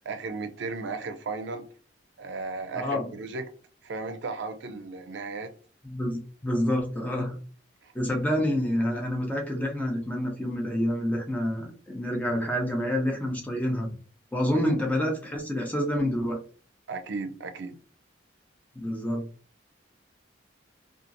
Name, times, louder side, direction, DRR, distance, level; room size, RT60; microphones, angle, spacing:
voice 1, 0.0-1.7 2.2-3.5 3.8-5.5 7.8-7.9 14.5-14.8 16.9-17.8, right 3 dB, 70° right, 0.4 m, -35 dB
voice 2, 2.7-3.1 5.8-7.3 7.9-13.9 14.3-16.4 18.8-19.3, left 1 dB, 10° left, 0.5 m, -28 dB
2.8 x 2.4 x 2.5 m
head